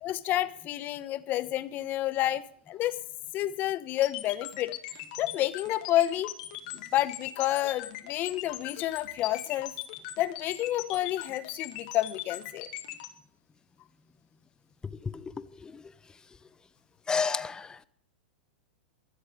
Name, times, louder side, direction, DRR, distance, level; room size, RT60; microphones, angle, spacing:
voice 1, 0.0-3.0 3.3-4.7 5.2-6.3 6.9-9.7 10.2-12.7, left 14 dB, 35° left, 1.1 m, -29 dB
sound 1, 4.0-13.1, left 16 dB, 55° left, 2.1 m, -39 dB
voice 2, 15.0-15.8 17.1-17.8, left 5 dB, 15° left, 0.7 m, -32 dB
24.0 x 8.0 x 5.1 m
hypercardioid pair, 110°, 5 cm